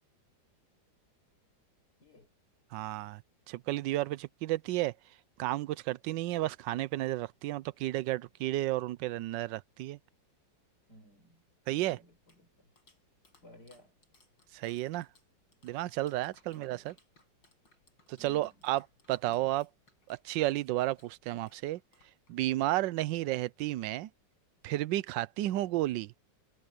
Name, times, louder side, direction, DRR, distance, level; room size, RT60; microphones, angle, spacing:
voice 1, 2.0-2.3 10.9-11.4 11.7-12.7 13.4-13.9 16.5-16.9 18.2-18.6 19.3-19.4, equal, 60° left, 6.3 m, -58 dB
voice 2, 2.7-3.2 3.5-4.9 5.4-10.0 11.7-12.0 14.5-15.1 15.6-16.9 18.1-19.7 20.1-21.8 22.3-24.1 24.6-26.1, right 16 dB, 85° right, 1.3 m, -32 dB
Clapping, 11.5-22.6, left 2 dB, 90° left, 6.6 m, -67 dB
omnidirectional pair, 2.0 m